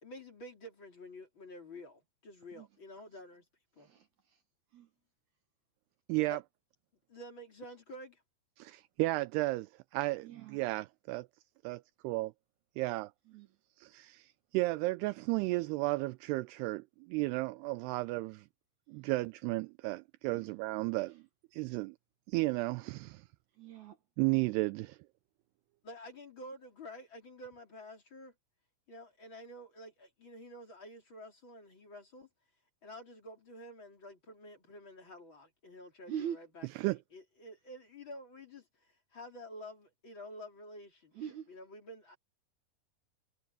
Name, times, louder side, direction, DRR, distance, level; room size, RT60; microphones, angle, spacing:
voice 1, 0.0-3.4 3.8-3.9 6.2-6.4 7.1-8.2 25.8-28.3 28.9-32.3 32.8-41.2 41.5-42.2, left 1 dB, 30° left, 3.4 m, -50 dB
voice 2, 6.1-6.4 8.6-11.3 11.6-12.3 12.8-13.1 13.8-18.5 18.9-21.2 21.5-22.0 22.3-23.2 24.2-25.0 36.8-37.0, right 21 dB, 85° right, 2.5 m, -33 dB
voice 3, 10.2-10.6 13.3-13.5 18.9-19.1 20.3-20.5 23.6-24.0 36.1-36.4 41.2-41.5, right 9 dB, 65° right, 2.0 m, -42 dB
omnidirectional pair, 4.8 m